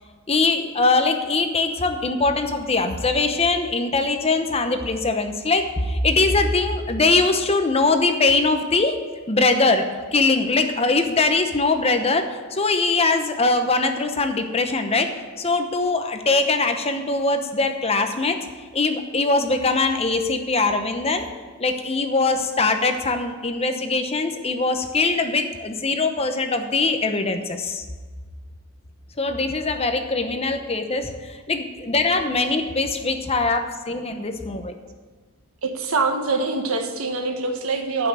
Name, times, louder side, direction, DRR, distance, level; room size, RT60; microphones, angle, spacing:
voice 1, 0.3-9.0 9.3-15.1 15.4-18.4 18.7-21.3 21.6-27.8 29.2-34.7, left 3 dB, 30° left, 7 dB, 0.9 m, -22 dB
voice 2, 35.6-38.1, right 3 dB, 80° right, 5 dB, 1.4 m, -24 dB
11.5 x 5.8 x 7.9 m, 1.4 s
head